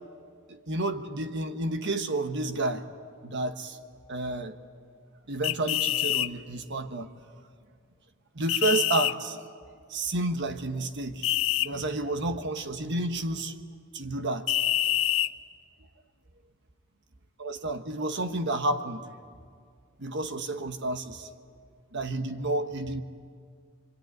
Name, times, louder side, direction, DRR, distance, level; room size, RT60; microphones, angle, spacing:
voice 1, 0.5-2.8 3.2-3.8 4.1-4.6 5.3-7.1 8.3-9.4 9.9-11.3 11.6-13.5 13.9-14.6 17.4-19.0 20.0-21.3 21.9-23.0, right 2 dB, 55° right, 1.3 m, -30 dB
sound 1, 5.4-6.3 8.5-9.1 11.2-11.7 14.5-15.3, left 13 dB, 65° left, 0.6 m, -26 dB
25.5 x 24.0 x 9.3 m
head